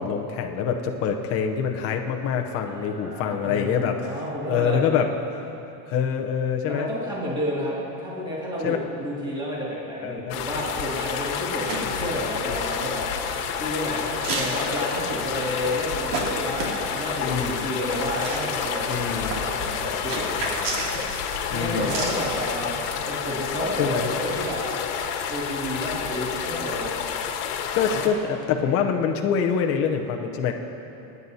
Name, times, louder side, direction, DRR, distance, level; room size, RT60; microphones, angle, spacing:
voice 1, 0.0-4.1 4.5-5.1 5.9-6.9 8.6-8.8 10.0-10.6 17.2-17.7 18.9-19.4 21.5-22.0 23.8-24.1 27.7-30.5, left 7 dB, 30° left, 3 dB, 0.7 m, -25 dB
voice 2, 2.7-4.8 6.7-13.0 13.6-20.6 21.5-24.6 25.3-26.9 27.9-28.1 28.4-28.6, equal, 10° right, -6 dB, 2.2 m, -31 dB
sound 1, 10.3-28.1, left 7 dB, 70° left, 1.4 m, -29 dB
sound 2, 11.6-22.3, right 2 dB, 80° right, 2.6 m, -34 dB
26.5 x 9.5 x 2.8 m, 2.9 s
supercardioid pair, 165°, 46 cm